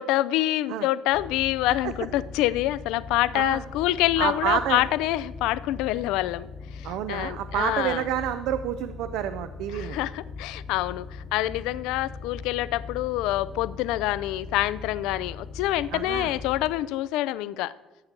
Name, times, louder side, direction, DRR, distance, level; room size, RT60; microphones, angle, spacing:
voice 1, 0.0-8.1 9.7-17.7, left 15 dB, 70° left, 17 dB, 0.3 m, -26 dB
sound 1, 1.1-16.7, left 4 dB, 25° left, 0.9 m, -40 dB
voice 2, 4.2-4.8 6.8-10.0 15.9-16.3, right 11 dB, 65° right, 11 dB, 0.4 m, -28 dB
15.0 x 8.6 x 2.9 m, 1.1 s
hypercardioid pair, 50°, 0 cm